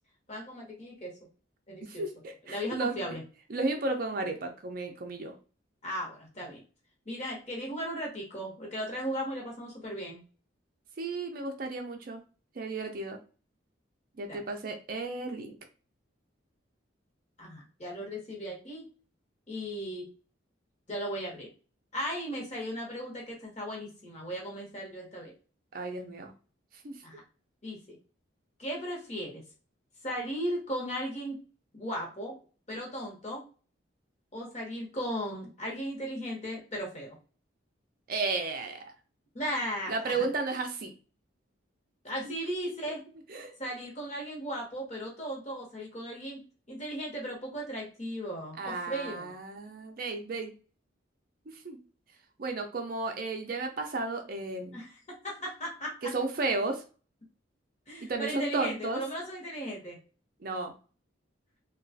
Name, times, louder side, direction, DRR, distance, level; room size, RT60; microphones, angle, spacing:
voice 1, 0.3-1.2 1.7-2.1 2.4-3.2 5.8-6.6 7.1-10.2 14.3-14.4 17.4-18.9 19.5-20.1 20.9-21.5 21.9-25.3 27.0-27.2 27.6-28.0 28.6-29.4 30.0-31.4 31.7-32.4 32.7-33.4 34.3-37.2 39.3-40.2 42.0-43.0 43.6-46.4 46.7-49.3 54.7-55.0 55.2-56.1 57.9-60.0, equal, 35° left, -2 dB, 1.0 m, -36 dB
voice 2, 1.8-3.0 3.5-5.3 11.0-12.2 12.6-13.2 14.2-15.6 25.7-26.3 26.7-27.0 38.1-38.8 39.9-40.9 43.3-43.5 48.6-50.5 51.5-51.8 52.4-54.8 56.0-56.8 58.0-59.0 60.4-60.7, right 3 dB, 45° right, 5 dB, 0.4 m, -33 dB
2.9 x 2.3 x 2.6 m, 0.37 s
head